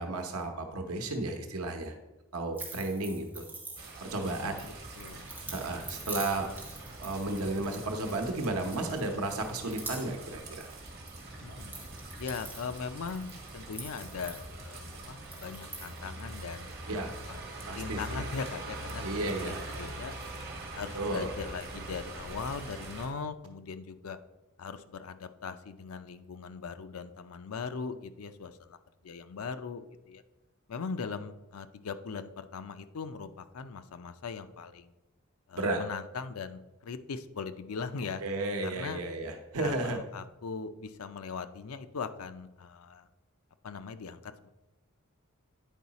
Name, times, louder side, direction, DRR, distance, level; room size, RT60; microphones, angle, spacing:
voice 1, 0.0-2.0 2.3-3.5 4.0-4.5 5.5-6.5 7.0-10.7 16.9-17.1 17.6-18.2 19.0-19.6 20.9-21.3 35.5-35.8 38.2-40.0, right 2 dB, 85° right, 4 dB, 0.9 m, -33 dB
sound 1, 2.5-4.2 4.6-8.4 8.7-9.3 9.6-11.2 11.5-14.8 15.2-16.0, right 2 dB, 10° right, 1.4 m, -45 dB
sound 2, 3.8-23.1, right 2 dB, 50° right, 1.5 m, -43 dB
voice 2, 4.4-5.3 11.4-11.7 12.2-17.4 17.7-20.2 20.7-24.2 24.6-28.8 29.0-30.2 30.7-34.9 35.5-38.2 38.6-39.0 39.6-43.1 43.6-44.5, left 5 dB, 80° left, 10 dB, 0.5 m, -40 dB
9.2 x 4.7 x 4.1 m, 1.1 s
head